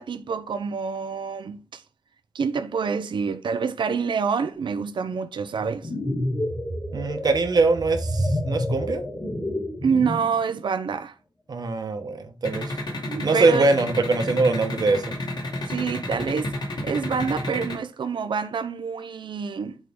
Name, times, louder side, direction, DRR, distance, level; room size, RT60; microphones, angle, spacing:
voice 1, 0.0-1.8 2.3-5.9 9.8-11.1 13.1-13.7 15.7-16.5 16.8-19.8, right 6 dB, 70° right, 0.6 m, -27 dB
sound 1, 5.6-10.4, equal, 25° left, 2.0 m, -29 dB
voice 2, 6.9-9.0 11.5-12.7 13.2-15.1, right 3 dB, 50° right, 1.1 m, -22 dB
sound 2, 12.4-17.7, left 1 dB, 55° left, 2.5 m, -30 dB
8.2 x 4.9 x 3.6 m
wide cardioid pair, 180°, 9 cm